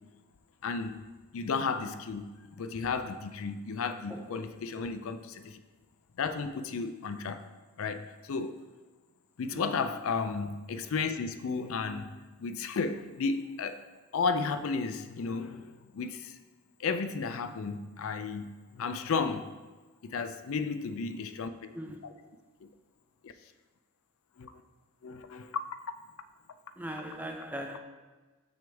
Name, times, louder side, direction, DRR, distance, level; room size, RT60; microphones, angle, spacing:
voice 1, 0.6-1.0 1.3-5.6 6.2-7.4 7.8-8.6 9.4-13.8 14.1-16.4 16.8-18.5 18.7-19.5 20.0-21.7 22.0-22.1 22.6-22.7 23.2-23.3 24.4-24.5 25.0-25.7, left 4 dB, 70° left, 0.4 m, -33 dB
voice 2, 26.8-27.8, equal, 5° right, 0.5 m, -39 dB
6.9 x 6.2 x 3.5 m
head